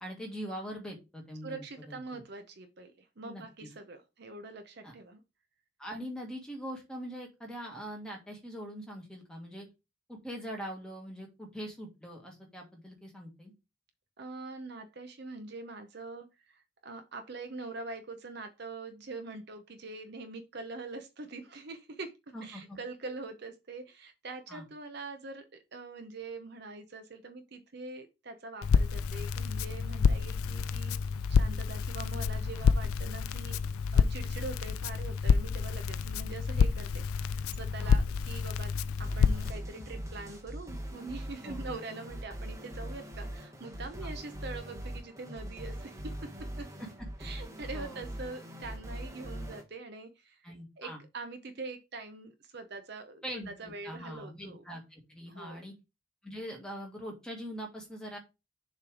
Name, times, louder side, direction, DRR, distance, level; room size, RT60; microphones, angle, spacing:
voice 1, 0.0-2.2 3.2-3.7 4.8-4.9 5.8-9.7 10.1-13.5 22.3-22.8 24.5-24.6 37.8-38.0 41.4-41.8 44.0-44.1 47.7-48.0 50.4-51.0 53.2-55.7 56.2-58.2, equal, 5° left, 1.7 m, -42 dB
voice 2, 1.4-5.2 14.2-16.3 16.5-31.0 31.3-33.6 33.9-46.3 46.6-46.7 47.2-54.6 55.3-55.6, right 3 dB, 50° right, 0.7 m, -44 dB
Crackle, 28.6-39.5, left 5 dB, 85° left, 0.4 m, -28 dB
sound 1, 39.0-49.6, equal, 15° right, 1.2 m, -41 dB
6.9 x 3.3 x 4.8 m
head